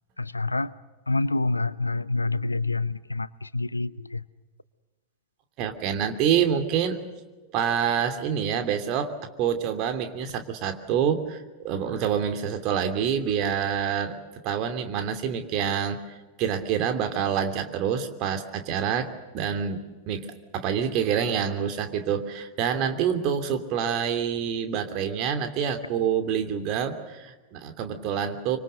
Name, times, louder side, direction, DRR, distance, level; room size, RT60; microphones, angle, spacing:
voice 1, 0.2-0.7 1.1-4.2, left 3 dB, 80° left, 19 dB, 0.7 m, -27 dB
voice 2, 5.6-7.0 7.5-16.0 16.4-20.3 20.5-28.6, right 8 dB, 40° right, 7 dB, 2.8 m, -27 dB
26.0 x 25.5 x 6.7 m, 1.2 s
figure-of-eight pair, 90°, 0 cm